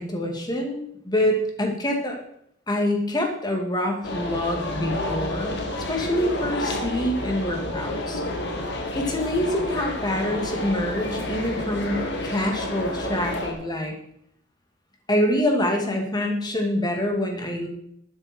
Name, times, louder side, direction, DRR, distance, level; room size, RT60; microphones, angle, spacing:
voice 1, 0.0-2.2 2.7-5.6 5.9-8.2 8.9-13.9 15.1-17.7, left 1 dB, 20° left, 2 dB, 2.5 m, -26 dB
sound 1, 4.0-13.5, left 1 dB, 60° left, 2.3 m, -30 dB
12.5 x 9.9 x 4.6 m, 0.71 s
head